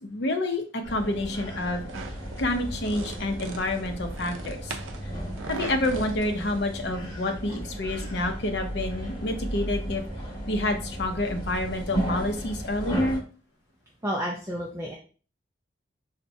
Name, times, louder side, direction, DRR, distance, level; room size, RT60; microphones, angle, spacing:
voice 1, 0.0-1.8 2.4-4.7 5.5-10.0 10.5-13.2, left 1 dB, 60° left, 5 dB, 0.6 m, -28 dB
sound 1, 0.8-13.2, equal, 20° left, 1.3 m, -35 dB
sound 2, 1.9-6.9, right 4 dB, 90° right, 0.4 m, -41 dB
voice 2, 14.0-14.9, equal, 15° right, -2 dB, 0.4 m, -30 dB
4.1 x 2.1 x 2.6 m, 0.38 s
head